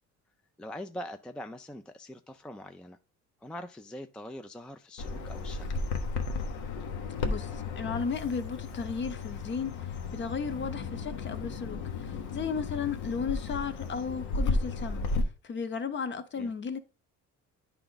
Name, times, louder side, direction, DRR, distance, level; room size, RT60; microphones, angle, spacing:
voice 1, 0.6-3.0 3.4-5.8 16.3-16.5, left 1 dB, 5° left, 0.4 m, -43 dB
Bird vocalization bird call bird song, 5.0-15.2, left 3 dB, 85° left, 1.1 m, -34 dB
voice 2, 7.2-15.1 15.4-16.8, left 5 dB, 40° left, 0.8 m, -35 dB
10.0 x 3.5 x 3.9 m
cardioid pair, 115°, 30 cm